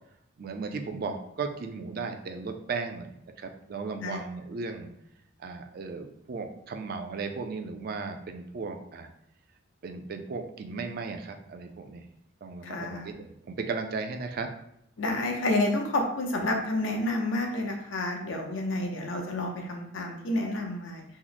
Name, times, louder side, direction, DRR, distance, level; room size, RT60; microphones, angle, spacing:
voice 1, 0.4-3.1 3.4-4.9 5.4-9.1 9.8-12.1 12.4-14.5, right 4 dB, 50° right, 5 dB, 0.3 m, -36 dB
voice 2, 12.6-13.1 15.0-21.0, left 2 dB, 75° left, 2 dB, 0.6 m, -29 dB
3.0 x 2.0 x 3.9 m, 0.76 s
head